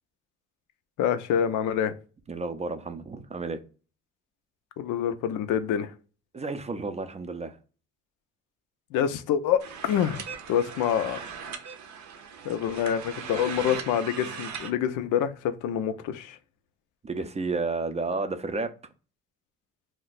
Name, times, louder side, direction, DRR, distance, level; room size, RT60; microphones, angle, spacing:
voice 1, 1.0-1.9 4.8-5.9 8.9-10.2 10.5-11.2 12.4-16.4, left 9 dB, 85° left, 0.5 m, -26 dB
voice 2, 2.3-3.6 6.3-7.6 17.0-18.7, right 3 dB, 20° right, 0.4 m, -31 dB
sound 1, 9.6-14.7, right 7 dB, 65° right, 0.6 m, -39 dB
2.3 x 2.1 x 3.9 m
cardioid pair, 90°, 30 cm